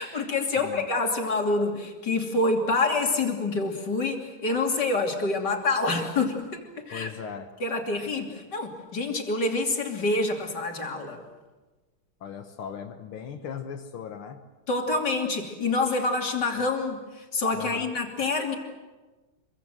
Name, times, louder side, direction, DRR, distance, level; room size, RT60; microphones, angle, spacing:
voice 1, 0.0-7.1 7.6-11.2 14.7-18.6, left 3 dB, 55° left, 2 dB, 3.5 m, -27 dB
voice 2, 0.6-0.9 6.9-7.5 12.2-14.4 17.5-17.9, left 7 dB, 80° left, 6 dB, 2.1 m, -38 dB
26.0 x 23.5 x 7.7 m, 1.2 s
omnidirectional pair, 2.3 m